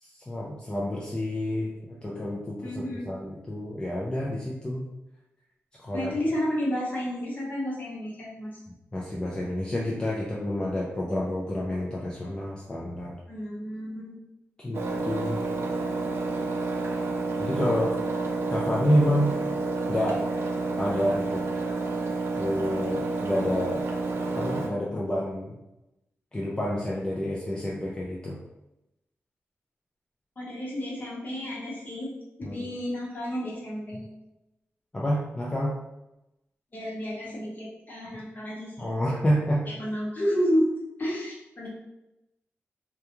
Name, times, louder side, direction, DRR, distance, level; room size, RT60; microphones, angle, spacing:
voice 1, 0.0-4.8 5.8-6.1 8.9-13.2 14.6-15.4 17.4-18.0 18.5-19.4 19.9-20.2 20.8-21.4 22.3-23.8 24.2-25.6 26.3-28.4 32.4-32.6 34.9-35.8 38.8-39.7, equal, 20° left, -5 dB, 0.4 m, -29 dB
voice 2, 2.6-3.1 5.9-8.5 13.3-14.2 30.4-32.1 32.4-34.1 36.7-38.9 39.7-40.7 41.0-41.7, equal, 40° left, -6 dB, 1.0 m, -31 dB
Engine, 14.7-24.7, right 3 dB, 60° right, 0.4 m, -29 dB
2.3 x 2.3 x 2.9 m, 0.92 s
wide cardioid pair, 85°, 5 cm